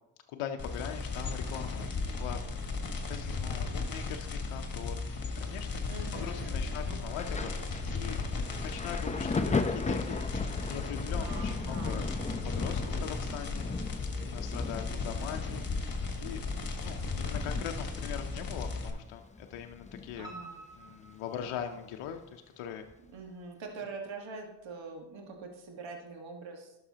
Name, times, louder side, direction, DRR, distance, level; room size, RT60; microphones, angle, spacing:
voice 1, 0.3-2.5 2.8-8.2 8.5-12.1 12.4-13.7 14.2-15.9 16.2-16.4 16.8-20.3 20.8-22.9, left 9 dB, 80° left, 5 dB, 0.7 m, -41 dB
sound 1, 0.6-18.9, left 4 dB, 45° left, 1.5 m, -35 dB
voice 2, 5.9-7.0 11.2-12.1 20.2-20.6 23.1-26.8, right 4 dB, 65° right, 2 dB, 1.6 m, -44 dB
Thunder, 7.1-20.5 20.7-22.1 22.9-23.1, left 3 dB, 15° left, 0.6 m, -37 dB
Piano, 20.2-22.2 22.6-23.4 23.8-23.9 24.3-24.4 24.7-24.8, right 2 dB, 10° right, 2.2 m, -50 dB
11.0 x 6.4 x 2.8 m, 0.89 s
supercardioid pair, 55°, 49 cm